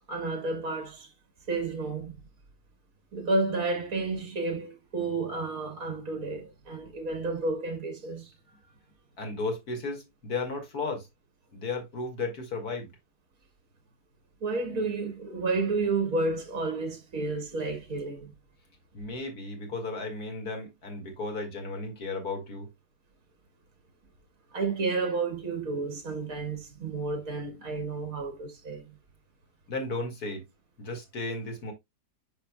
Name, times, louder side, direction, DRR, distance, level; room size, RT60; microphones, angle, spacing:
voice 1, 0.1-1.1 1.5-2.1 3.1-8.3 14.4-18.3 24.5-29.0, right 3 dB, 60° right, 2.5 m, -31 dB
voice 2, 9.2-11.1 11.5-12.9 18.9-22.7 29.7-30.4 30.8-31.7, left 3 dB, 70° left, 2.4 m, -34 dB
9.3 x 5.6 x 2.2 m
omnidirectional pair, 1.7 m